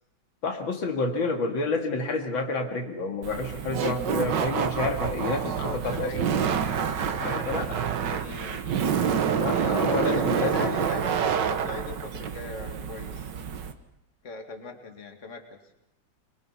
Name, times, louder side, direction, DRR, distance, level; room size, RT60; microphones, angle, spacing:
voice 1, 0.4-6.2 7.2-7.7 8.8-10.7, left 3 dB, 85° left, 3 dB, 2.9 m, -29 dB
Laughter, 3.2-13.7, right 7 dB, 65° right, 1.8 m, -27 dB
voice 2, 5.6-6.7 7.1-8.7 9.4-13.3 14.2-15.6, left 4 dB, 40° left, 4 dB, 2.5 m, -39 dB
24.5 x 23.0 x 5.9 m, 0.85 s
omnidirectional pair, 2.1 m